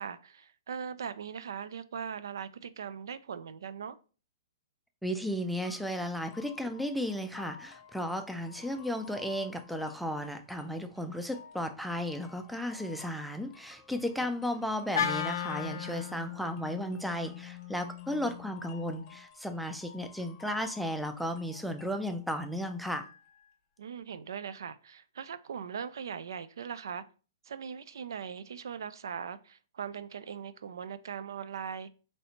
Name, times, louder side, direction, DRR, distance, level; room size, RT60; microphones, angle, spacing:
voice 1, 0.0-4.0 23.8-27.0 27.4-31.9, right 7 dB, 80° right, 0.4 m, -40 dB
voice 2, 5.0-23.1, equal, ahead, 0.3 m, -34 dB
sound 1, 5.6-23.5, left 6 dB, 25° left, 0.7 m, -54 dB
Wind instrument woodwind instrument, 14.9-19.2, left 9 dB, 80° left, 0.5 m, -37 dB
4.1 x 3.2 x 2.9 m
hypercardioid pair, 160°, 2 cm